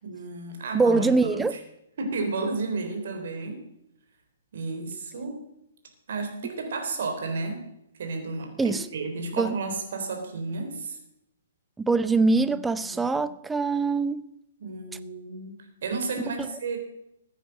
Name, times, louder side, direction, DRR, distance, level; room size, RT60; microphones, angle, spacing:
voice 1, 0.0-1.6 2.0-3.6 4.5-5.4 6.1-7.6 8.0-11.0 12.5-13.0 14.6-16.8, right 3 dB, 55° right, 3.7 m, -32 dB
voice 2, 0.7-1.5 8.6-8.9 9.4-9.6 11.8-14.3, right 3 dB, 10° right, 0.7 m, -23 dB
15.0 x 9.6 x 6.6 m
figure-of-eight pair, 120°, 0 cm